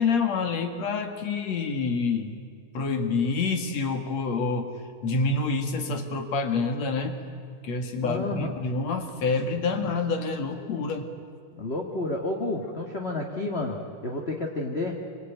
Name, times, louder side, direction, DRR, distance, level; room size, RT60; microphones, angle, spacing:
voice 1, 0.0-2.4 2.7-4.7 5.0-7.2 7.6-11.1 11.5-11.7, left 4 dB, 60° left, 6 dB, 3.0 m, -27 dB
voice 2, 8.0-8.5 11.6-15.0, left 2 dB, 30° left, 0 dB, 1.3 m, -30 dB
26.5 x 23.5 x 9.2 m, 2.2 s
omnidirectional pair, 3.7 m